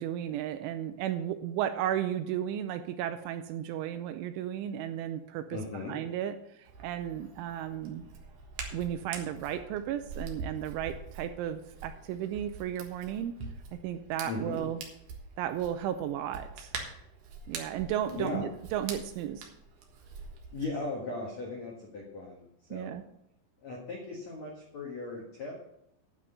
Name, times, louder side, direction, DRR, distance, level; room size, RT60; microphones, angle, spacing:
voice 1, 0.0-5.6 5.9-6.3 6.6-8.1 8.7-13.3 13.7-14.8 15.4-16.7 17.5-19.5 22.7-23.0, right 10 dB, 85° right, 9 dB, 2.9 m, -34 dB
voice 2, 5.5-5.9 14.2-14.6 18.1-18.5 20.5-23.0 23.6-25.6, left 2 dB, 70° left, -2 dB, 1.6 m, -38 dB
Hands, 6.6-20.7, right 4 dB, 65° right, 2.1 m, -45 dB
10.5 x 6.0 x 8.0 m, 0.77 s
omnidirectional pair, 5.8 m